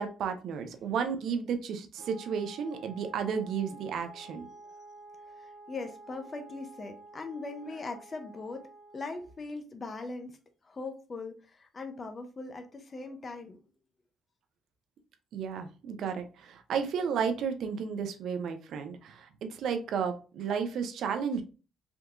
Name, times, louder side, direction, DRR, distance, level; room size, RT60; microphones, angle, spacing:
voice 1, 0.0-4.4 15.3-21.4, right 6 dB, 75° right, 7 dB, 0.6 m, -33 dB
Wind instrument woodwind instrument, 1.9-9.4, right 2 dB, 60° left, 1.4 m, -51 dB
voice 2, 4.1-4.8 5.3-8.6 8.9-10.4 10.6-13.6, left 3 dB, 35° left, 6 dB, 0.6 m, -41 dB
3.5 x 2.7 x 2.4 m, 0.33 s
cardioid pair, 90°, 0 cm